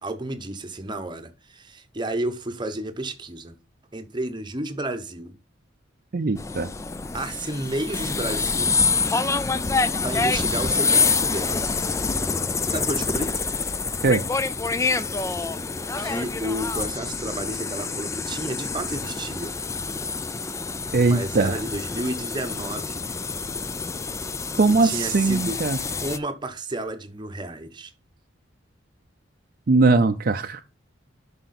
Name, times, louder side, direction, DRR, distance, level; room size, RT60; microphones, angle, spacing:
voice 1, 0.0-3.5 3.9-5.3 7.1-8.7 10.0-11.8 12.7-13.3 16.0-19.5 21.0-23.1 24.7-25.6 26.0-27.9, right 1 dB, 25° right, 0.8 m, -31 dB
voice 2, 6.1-6.7 14.0-14.2 20.9-21.6 24.6-25.8 29.7-30.7, right 3 dB, 50° right, 0.5 m, -20 dB
sound 1, 6.4-26.2, left 4 dB, 15° left, 0.3 m, -26 dB
7.8 x 5.7 x 4.2 m
head